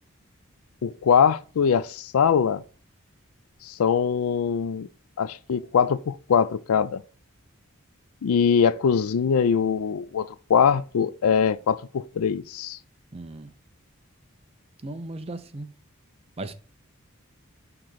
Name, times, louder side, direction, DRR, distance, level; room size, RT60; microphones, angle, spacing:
voice 1, 0.8-2.6 3.6-4.9 5.2-7.0 8.2-12.8, left 7 dB, 75° left, 0.4 m, -22 dB
voice 2, 13.1-13.5 14.8-15.7 16.4-16.5, right 2 dB, 25° right, 0.5 m, -36 dB
5.9 x 3.9 x 4.6 m
head